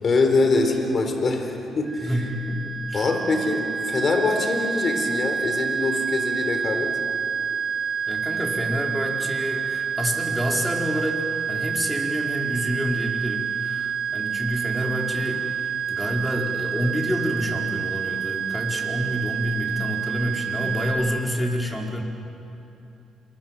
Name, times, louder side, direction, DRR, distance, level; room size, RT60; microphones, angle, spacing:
voice 1, 0.0-2.1 2.9-6.9, left 3 dB, 45° left, 5 dB, 4.1 m, -23 dB
sound 1, 1.9-20.9, right 7 dB, 15° right, 5.1 m, -28 dB
voice 2, 2.0-3.1 8.1-22.0, equal, 10° left, 0 dB, 4.7 m, -28 dB
27.5 x 22.5 x 7.7 m, 2.8 s
cardioid pair, 90°, 0 cm